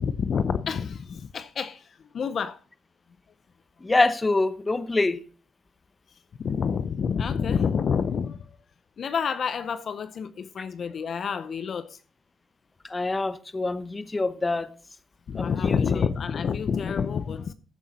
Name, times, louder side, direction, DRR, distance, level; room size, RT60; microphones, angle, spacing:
voice 1, 0.0-1.9 2.1-2.6 6.4-8.6 9.0-12.0 15.3-17.5, left 6 dB, 50° left, 0.6 m, -28 dB
voice 2, 3.8-5.2 12.9-14.7 15.4-16.1, left 2 dB, 20° left, 0.9 m, -25 dB
14.5 x 7.2 x 4.1 m
cardioid pair, 90°, 0 cm